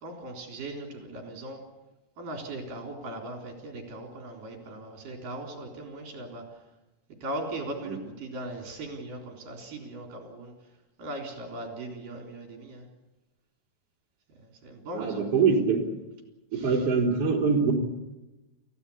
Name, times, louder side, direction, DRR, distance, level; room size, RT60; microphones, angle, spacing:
voice 1, 0.0-1.6 2.2-6.4 7.2-10.5 11.0-12.8 14.6-15.2 16.5-16.8, right 1 dB, 65° right, 2 dB, 5.4 m, -39 dB
voice 2, 14.9-15.9 16.5-17.7, right 5 dB, 40° right, -1 dB, 4.4 m, -24 dB
29.5 x 15.5 x 8.6 m, 1.0 s
omnidirectional pair, 4.2 m